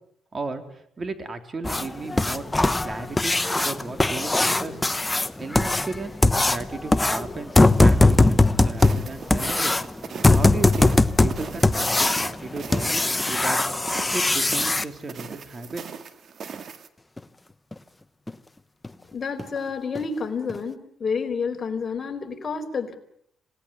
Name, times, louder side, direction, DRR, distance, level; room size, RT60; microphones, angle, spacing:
voice 1, 0.3-2.5 2.8-4.8 5.4-6.2 6.4-9.7 10.3-13.6 14.1-15.8, right 3 dB, 35° right, 7 dB, 3.8 m, -35 dB
sound 1, 1.6-14.8 17.2-17.3 17.7-17.8 18.3-18.4 18.8-18.9 19.4-19.6 19.9-20.0 20.5-20.6, left 2 dB, 15° left, 1.1 m, -21 dB
sound 2, 8.8-16.9, right 6 dB, 55° right, 2.1 m, -39 dB
voice 2, 19.1-23.0, left 5 dB, 35° left, 4 dB, 4.7 m, -29 dB
27.0 x 18.5 x 9.8 m, 0.71 s
cardioid pair, 90°, 0 cm